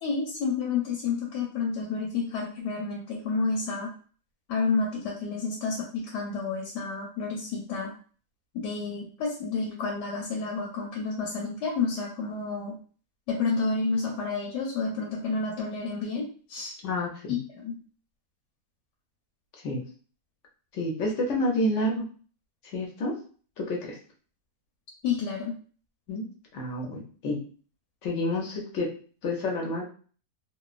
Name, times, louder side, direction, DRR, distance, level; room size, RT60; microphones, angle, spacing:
voice 1, 0.0-3.9 4.5-7.9 8.5-12.7 13.3-16.7 17.3-17.4 17.6-17.8 25.0-25.6, left 4 dB, 85° left, -1 dB, 1.2 m, -30 dB
voice 2, 16.8-17.4 19.6-19.8 20.7-22.0 22.6-23.1 23.6-24.0 26.1-26.3 26.5-27.4 28.0-28.9 29.2-29.8, left 1 dB, 65° left, 0 dB, 0.8 m, -29 dB
3.0 x 2.1 x 2.3 m, 0.41 s
omnidirectional pair, 1.8 m